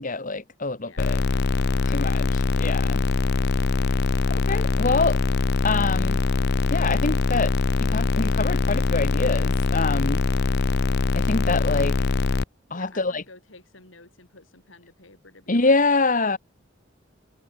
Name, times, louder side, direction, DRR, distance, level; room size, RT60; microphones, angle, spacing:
voice 1, 0.0-1.2 1.9-2.3 2.6-3.0 4.3-5.2 5.6-6.2 6.7-7.5 7.8-10.2 11.1-12.0 12.7-13.2 15.5-16.4, left 3 dB, 40° left, 1.7 m, -25 dB
sound 1, 1.0-12.4, left 3 dB, 60° left, 0.6 m, -23 dB
voice 2, 12.7-16.4, left 3 dB, 75° left, 6.3 m, -51 dB
head